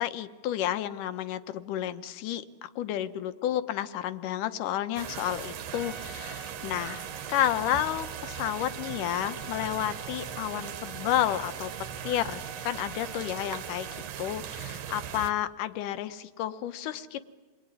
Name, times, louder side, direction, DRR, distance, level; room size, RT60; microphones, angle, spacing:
voice 1, 0.0-7.0 7.3-11.7 12.0-17.2, left 12 dB, 80° left, 11 dB, 2.5 m, -31 dB
sound 1, 5.0-15.3, right 9 dB, 65° right, 1.9 m, -39 dB
Trumpet, 5.7-14.2, right 3 dB, 35° left, 1.5 m, -49 dB
28.0 x 20.5 x 9.8 m, 1.3 s
omnidirectional pair, 3.7 m